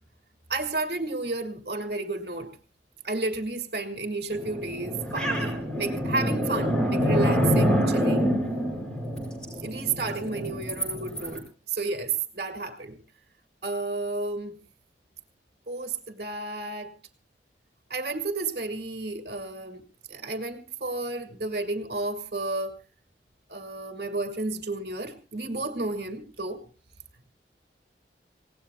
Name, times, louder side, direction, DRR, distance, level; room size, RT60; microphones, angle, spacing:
voice 1, 0.5-2.5 3.0-8.3 9.6-13.0 13.6-14.6 15.7-16.9 17.9-19.8 20.1-22.7 23.5-26.6, right 3 dB, 55° right, 5 dB, 2.1 m, -32 dB
sound 1, 4.3-11.4, equal, 5° left, 5.4 m, -26 dB
27.5 x 18.0 x 2.3 m, 0.35 s
head